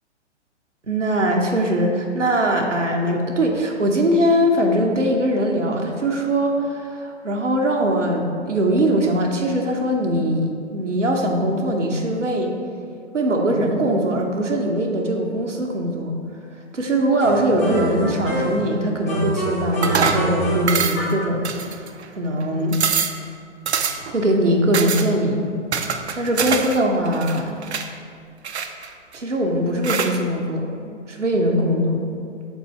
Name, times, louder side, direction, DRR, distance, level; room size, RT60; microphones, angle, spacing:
voice 1, 0.9-12.5 13.1-16.1 16.7-21.9 22.1-22.8 24.1-25.4 26.2-27.6 29.1-30.7 31.1-32.0, right 1 dB, 85° right, 0 dB, 0.8 m, -21 dB
sound 1, 17.2-18.7 19.1-21.3, right 1 dB, 15° left, 0.4 m, -26 dB
sound 2, 19.8-20.3 20.7-21.1 21.4-22.1 22.4-22.5 22.7-23.2 23.7-24.1 24.7-25.1 25.7-26.8 27.1-27.9 28.4-29.2 29.8-30.2, right 6 dB, 65° right, 0.5 m, -24 dB
4.6 x 4.1 x 5.5 m, 2.3 s
figure-of-eight pair, 120°, 36 cm